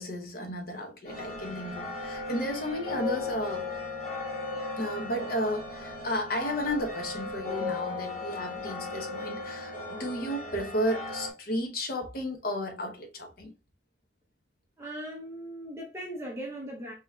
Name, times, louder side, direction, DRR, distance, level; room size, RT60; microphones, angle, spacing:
voice 1, 0.0-3.7 4.8-13.5, equal, 55° left, 1.0 m, -33 dB
sound 1, 1.0-11.3, left 3 dB, 40° left, 1.7 m, -36 dB
voice 2, 14.8-16.9, right 1 dB, 15° right, 0.8 m, -39 dB
5.6 x 3.0 x 2.3 m
head